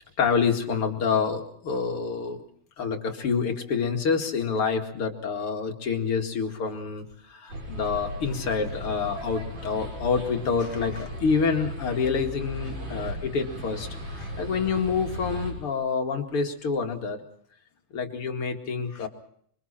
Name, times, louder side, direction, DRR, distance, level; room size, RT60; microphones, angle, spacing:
voice 1, 0.2-2.4 2.8-17.2 17.9-19.1, left 5 dB, 45° left, 3 dB, 2.7 m, -27 dB
sound 1, 7.5-15.5, equal, 80° right, 7.9 m, -36 dB
26.5 x 24.5 x 4.3 m, 0.66 s
omnidirectional pair, 3.6 m